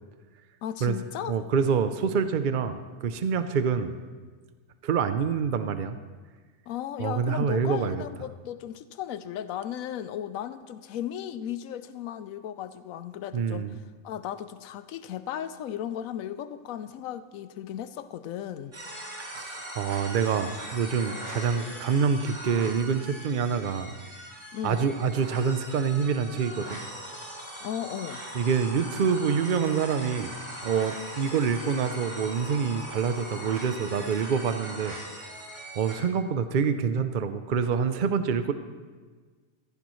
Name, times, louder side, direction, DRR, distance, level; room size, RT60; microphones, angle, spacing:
voice 1, 0.6-1.4 6.7-13.7 14.0-18.7 24.5-24.9 27.6-28.2, left 10 dB, 85° left, 13 dB, 1.0 m, -35 dB
voice 2, 1.3-3.9 4.8-6.0 7.0-8.0 13.3-13.7 19.3-23.9 24.6-26.8 28.3-30.3 30.6-35.0 35.8-38.5, right 6 dB, 55° right, 10 dB, 0.5 m, -26 dB
sound 1, 18.7-36.0, equal, 35° right, 2.6 m, -40 dB
15.0 x 15.0 x 3.1 m, 1.5 s
omnidirectional pair, 1.4 m